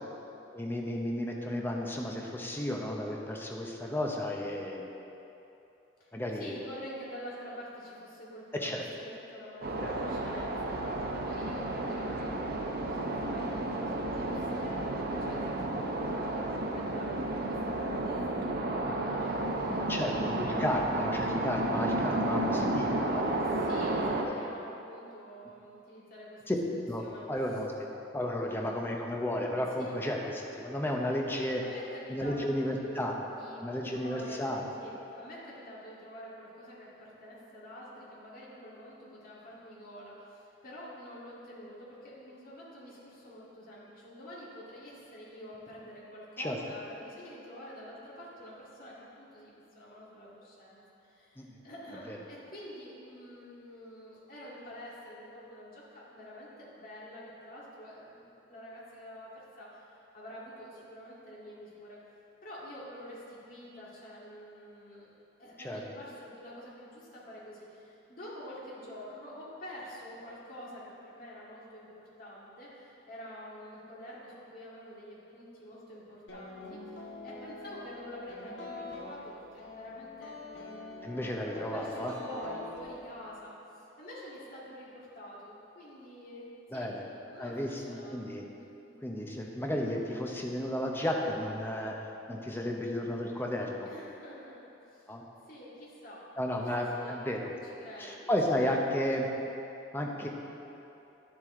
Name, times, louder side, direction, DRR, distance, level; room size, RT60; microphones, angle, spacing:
voice 1, 0.5-4.9 6.1-6.5 8.6-8.8 9.8-9.9 19.9-23.3 24.2-24.4 26.5-26.6 26.9-27.0 27.3-27.9 28.1-30.2 30.5-31.6 32.1-34.7 46.4-46.6 51.4-51.6 52.1-52.2 65.6-65.8 81.0-82.1 86.7-87.0 87.4-88.4 89.0-91.9 92.3-93.9 95.1-95.2 96.4-97.6 98.0-99.3 99.9-100.3, left 1 dB, 10° left, 0 dB, 0.8 m, -33 dB
voice 2, 6.0-20.8 23.5-26.4 27.0-27.6 28.4-28.8 29.8-30.0 31.6-33.1 33.4-34.5 34.8-62.0 62.4-65.1 65.4-88.2 88.6-88.9 93.8-95.1 95.5-96.2 96.5-97.2 97.6-98.3 98.6-98.8, equal, 50° left, -7 dB, 2.2 m, -47 dB
sound 1, 9.6-24.2, right 2 dB, 55° right, 0.7 m, -32 dB
sound 2, 76.3-83.4, left 2 dB, 75° left, 1.5 m, -45 dB
10.5 x 7.7 x 3.7 m, 3.0 s
head